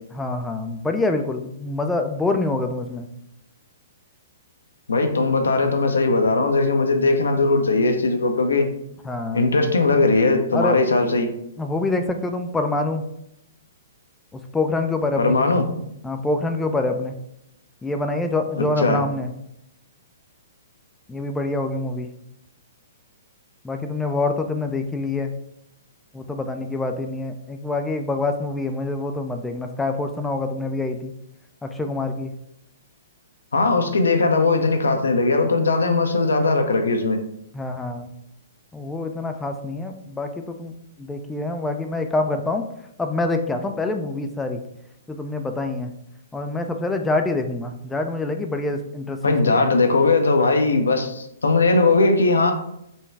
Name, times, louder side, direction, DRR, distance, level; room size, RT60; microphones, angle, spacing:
voice 1, 0.1-3.1 9.0-9.4 10.5-10.8 11.6-13.0 14.5-15.4 16.0-17.1 17.8-19.3 21.1-22.1 23.6-25.3 26.1-31.1 31.6-32.3 37.5-38.1 38.7-40.7 41.0-42.6 43.0-44.6 45.1-45.9 46.3-49.6, left 2 dB, 10° left, 5 dB, 0.3 m, -26 dB
voice 2, 4.9-8.7 9.3-11.3 15.2-15.6 18.6-19.0 33.5-37.2 49.2-52.5, left 3 dB, 90° left, 5 dB, 0.7 m, -19 dB
5.3 x 2.3 x 3.3 m, 0.79 s
hypercardioid pair, 135°, 0 cm